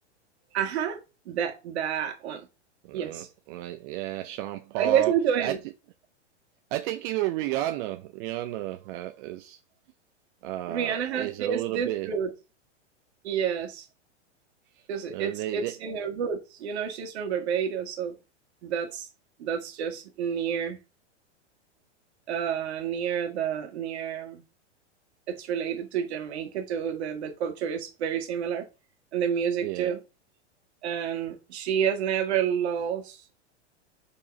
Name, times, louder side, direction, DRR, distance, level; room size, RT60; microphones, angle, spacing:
voice 1, 0.5-2.5 2.9-3.3 4.8-5.6 10.7-12.3 13.2-13.9 14.9-18.2 18.6-19.1 19.4-20.8 22.3-24.4 25.3-28.7 29.1-30.0 30.8-33.4, right 8 dB, 65° right, 2.0 m, -29 dB
voice 2, 2.8-5.6 6.7-9.6 10.4-12.1 14.7-14.8 15.1-15.7 29.6-29.9, right 14 dB, 50° right, 0.7 m, -32 dB
5.2 x 4.7 x 5.3 m
hypercardioid pair, 115°, 35 cm